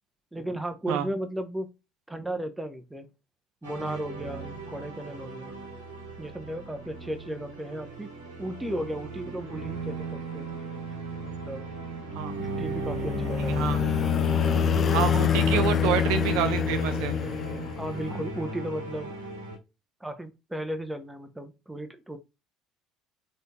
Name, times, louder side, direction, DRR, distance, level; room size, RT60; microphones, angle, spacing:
voice 1, 0.3-1.7 2.1-3.1 3.6-5.6 6.2-8.1 8.4-10.5 11.2-11.7 12.4-13.8 17.8-19.1 20.0-22.2, right 1 dB, 10° right, 0.8 m, -35 dB
sound 1, 3.6-19.6, right 4 dB, 85° right, 1.6 m, -37 dB
sound 2, 12.4-18.1, left 8 dB, 40° left, 0.3 m, -26 dB
voice 2, 13.5-13.8 14.9-17.2, right 9 dB, 65° right, 0.6 m, -28 dB
3.9 x 3.8 x 2.3 m
hypercardioid pair, 60°, 0 cm